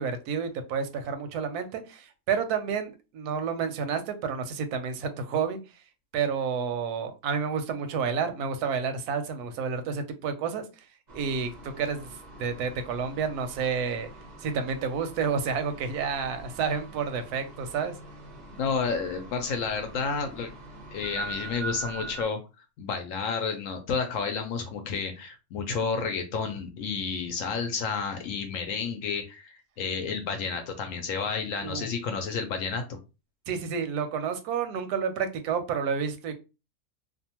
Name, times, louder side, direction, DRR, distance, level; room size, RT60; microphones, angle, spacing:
voice 1, 0.0-5.6 6.1-10.6 11.1-14.1 14.4-18.0 31.6-31.9 33.5-36.3, right 6 dB, 85° right, 8 dB, 1.1 m, -30 dB
sound 1, 11.1-22.2, right 3 dB, 50° right, 0.5 m, -43 dB
voice 2, 18.6-20.5 20.9-22.4 22.8-33.0, left 5 dB, 70° left, 6 dB, 0.8 m, -31 dB
2.7 x 2.2 x 2.8 m, 0.29 s
omnidirectional pair, 1.6 m